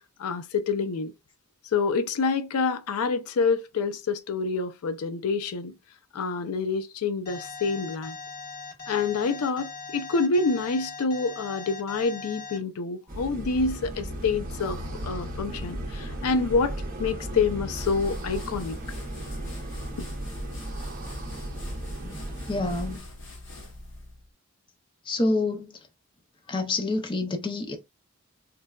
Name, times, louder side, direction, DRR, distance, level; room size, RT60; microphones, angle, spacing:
voice 1, 0.2-1.1 1.7-5.7 6.1-8.2 8.9-14.8 15.0-16.7 17.0-18.8, left 4 dB, 85° left, 0.4 m, -27 dB
Alarm, 7.3-12.6, left 4 dB, 40° left, 1.2 m, -40 dB
sound 1, 13.1-23.0, right 1 dB, 40° right, 0.7 m, -35 dB
sound 2, 17.8-24.3, left 1 dB, 55° left, 0.8 m, -44 dB
voice 2, 22.5-23.0 25.1-25.8 26.5-27.8, left 2 dB, 20° left, 0.4 m, -27 dB
3.8 x 2.1 x 2.2 m
head